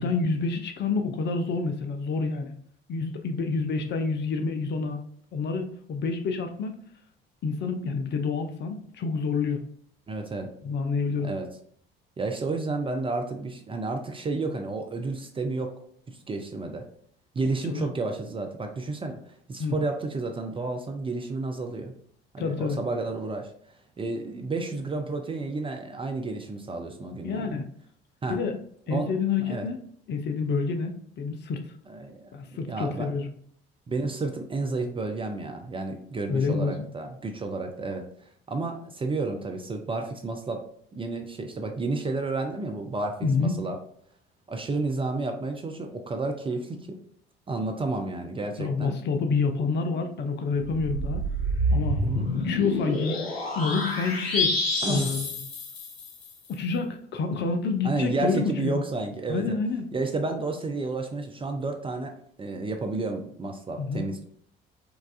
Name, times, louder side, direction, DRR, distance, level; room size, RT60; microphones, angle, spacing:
voice 1, 0.0-2.5 2.9-5.0 5.3-6.8 7.4-9.6 10.6-11.3 17.7-17.8 19.6-19.8 22.4-22.8 27.2-27.6 28.3-28.6 28.9-29.8 30.1-31.6 32.3-33.3 36.3-36.7 43.2-43.6 48.6-51.2 51.7-52.0 52.3-54.6 54.9-55.3 56.5-58.8 59.3-59.8 63.8-64.1, left 4 dB, 35° left, 6 dB, 0.5 m, -28 dB
voice 2, 10.1-10.5 11.2-11.5 12.2-15.7 16.1-16.8 17.4-21.9 22.3-23.5 24.0-27.6 28.2-28.4 28.9-29.1 29.4-29.7 31.9-33.1 33.9-40.6 40.9-43.8 44.5-47.0 47.5-49.0 52.0-52.3 54.8-55.1 57.8-59.6 59.9-64.2, right 3 dB, 20° right, 4 dB, 0.4 m, -31 dB
sound 1, 50.6-56.4, left 1 dB, 85° left, 0.5 m, -28 dB
4.7 x 2.3 x 2.3 m, 0.63 s
figure-of-eight pair, 50°, 30 cm